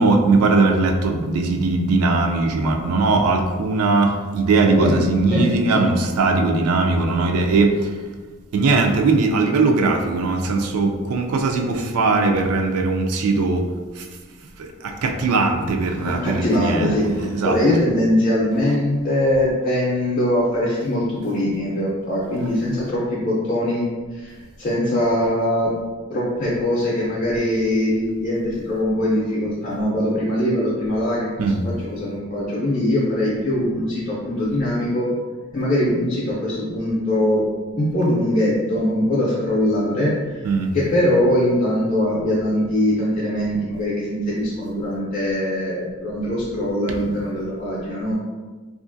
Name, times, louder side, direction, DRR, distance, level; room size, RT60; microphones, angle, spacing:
voice 1, 0.0-8.0 8.5-13.7 14.0-14.1 14.6-17.6 22.4-22.5 31.4-31.6 40.4-40.7, right 3 dB, 85° right, 4 dB, 0.4 m, -20 dB
voice 2, 16.0-23.8 24.1-25.7 26.1-35.1 35.5-37.4 37.7-40.4 40.7-48.1, left 1 dB, 40° left, -7 dB, 0.5 m, -22 dB
3.0 x 2.4 x 2.5 m, 1.4 s
head